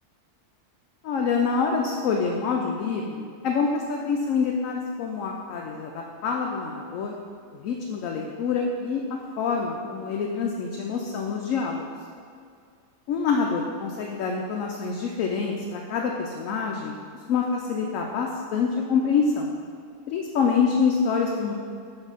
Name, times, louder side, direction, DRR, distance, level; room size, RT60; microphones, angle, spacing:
voice 1, 1.0-7.1 7.5-9.0 9.4-11.9 13.1-17.0 17.3-19.5 20.1-21.5, left 5 dB, 70° left, 1 dB, 0.9 m, -26 dB
7.1 x 3.5 x 5.5 m, 2.3 s
omnidirectional pair, 1.6 m